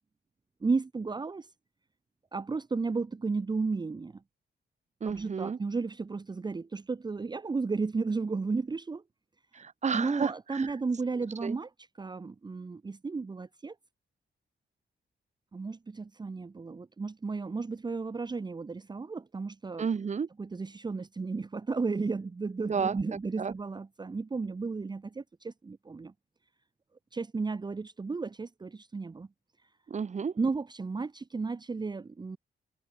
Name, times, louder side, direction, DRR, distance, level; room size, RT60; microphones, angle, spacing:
voice 1, 0.6-1.5 2.3-4.2 5.0-9.0 9.9-13.8 15.5-19.9 20.4-26.1 27.1-29.3 30.4-32.4, right 4 dB, 20° right, 1.1 m, -33 dB
voice 2, 5.0-5.6 9.5-10.6 11.4-11.6 19.8-20.3 22.7-23.0 23.4-23.5 29.9-30.3, right 6 dB, 40° right, 1.8 m, -31 dB
wide cardioid pair, 165°, 19 cm